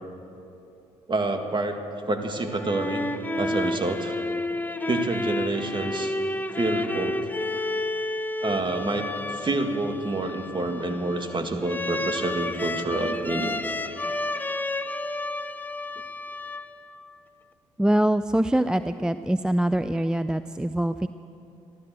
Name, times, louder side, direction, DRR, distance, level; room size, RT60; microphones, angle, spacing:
voice 1, 1.1-1.8 2.1-3.1 3.4-4.2 4.9-6.1 6.6-7.2 8.4-13.6, right 2 dB, 35° right, 5 dB, 2.0 m, -28 dB
sound 1, 2.4-17.1, left 2 dB, 10° left, 0.9 m, -31 dB
voice 2, 17.8-21.1, right 1 dB, 5° right, 12 dB, 0.4 m, -24 dB
15.0 x 12.5 x 7.8 m, 2.8 s
hypercardioid pair, 55°, 15 cm